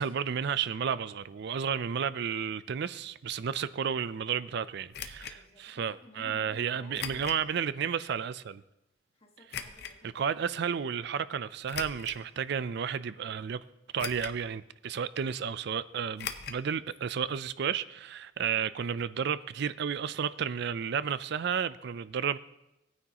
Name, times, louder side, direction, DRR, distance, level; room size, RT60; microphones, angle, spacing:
voice 1, 0.0-8.6 10.1-13.6 13.9-22.4, right 7 dB, 60° right, 0.4 m, -32 dB
voice 2, 3.5-3.8 5.2-7.8 9.1-10.3, left 1 dB, 30° left, 1.5 m, -56 dB
sound 1, 4.9-5.4 6.9-7.4 8.0-8.1 9.5-9.9 11.6-12.2 12.9-13.0 14.0-14.5 14.7-14.8 16.2-16.6 16.9-17.0 17.3-17.4, left 8 dB, 55° left, 0.7 m, -39 dB
17.0 x 9.5 x 2.9 m
head